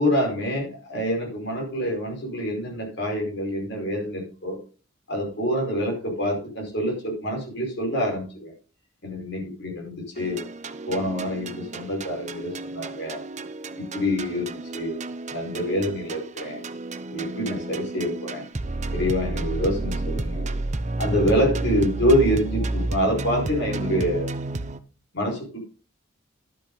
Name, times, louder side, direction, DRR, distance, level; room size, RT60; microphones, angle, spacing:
voice 1, 0.0-4.6 5.1-8.5 9.0-10.4 10.9-13.2 13.8-14.5 14.7-15.0 15.3-16.6 17.1-18.4 18.9-20.5 21.0-24.3 25.1-25.6, equal, 55° left, 1 dB, 5.1 m, -26 dB
sound 1, 10.2-24.8, right 2 dB, 35° right, 0.7 m, -31 dB
12.0 x 8.6 x 4.0 m, 0.37 s
head